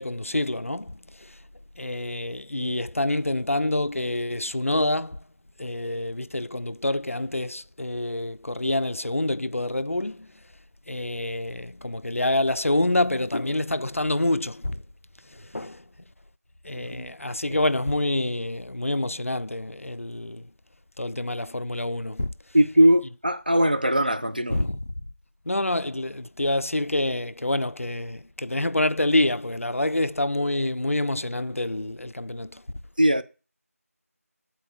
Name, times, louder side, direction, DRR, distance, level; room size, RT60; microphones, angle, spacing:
voice 1, 0.0-1.4 1.8-5.2 5.6-10.3 10.9-14.8 15.3-15.8 16.6-20.5 21.0-22.3 24.5-24.8 25.5-32.6, left 1 dB, 60° left, 0.4 m, -27 dB
voice 2, 16.7-17.1 17.5-17.6 22.5-24.6 33.0-33.2, equal, 35° right, 0.6 m, -21 dB
8.0 x 4.5 x 7.1 m
figure-of-eight pair, 180°, 8 cm